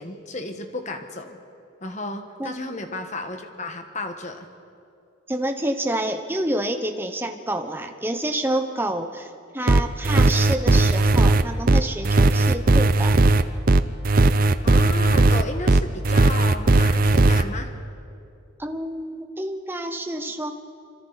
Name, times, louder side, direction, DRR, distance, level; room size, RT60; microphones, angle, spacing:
voice 1, 0.0-1.4 1.8-4.5 14.6-17.7, left 2 dB, 35° left, 6 dB, 1.4 m, -33 dB
voice 2, 5.3-13.2 18.6-20.5, right 1 dB, 10° right, 5 dB, 1.0 m, -28 dB
sound 1, 9.7-17.4, right 2 dB, 40° right, 0.6 m, -17 dB
27.0 x 25.0 x 4.1 m, 2.6 s
head